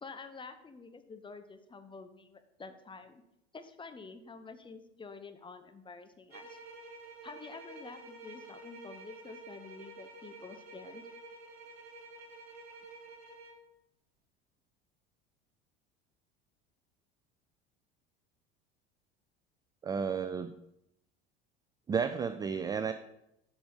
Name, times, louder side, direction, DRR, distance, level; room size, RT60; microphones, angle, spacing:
voice 1, 0.0-3.2 3.5-6.6 7.2-11.0, left 4 dB, 15° left, 8 dB, 0.8 m, -48 dB
sound 1, 6.3-13.7, right 2 dB, 75° right, 1.7 m, -50 dB
voice 2, 19.8-20.5 21.9-22.9, right 6 dB, 15° right, 11 dB, 0.3 m, -32 dB
8.4 x 5.2 x 5.5 m, 0.83 s
figure-of-eight pair, 70°, 32 cm